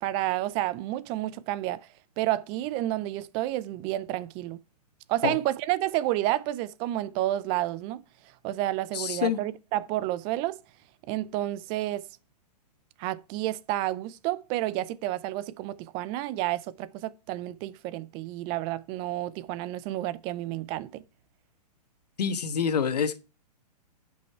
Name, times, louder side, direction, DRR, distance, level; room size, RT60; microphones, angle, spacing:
voice 1, 0.0-1.9 2.2-4.6 5.1-8.0 8.4-10.6 11.1-12.0 13.0-21.0, right 15 dB, 25° right, 0.5 m, -30 dB
voice 2, 8.9-9.4 22.2-23.2, left 7 dB, 75° left, 1.3 m, -26 dB
9.6 x 5.5 x 4.4 m
hypercardioid pair, 135°, 21 cm